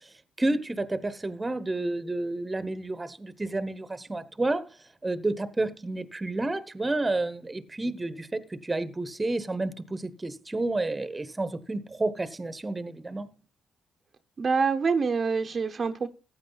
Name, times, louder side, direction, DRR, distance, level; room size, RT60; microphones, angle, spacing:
voice 1, 0.4-4.7 5.0-13.3, right 2 dB, 20° right, 1.1 m, -30 dB
voice 2, 14.4-16.1, right 5 dB, 40° right, 0.9 m, -26 dB
15.0 x 8.8 x 4.0 m
cardioid pair, 90°, 0 cm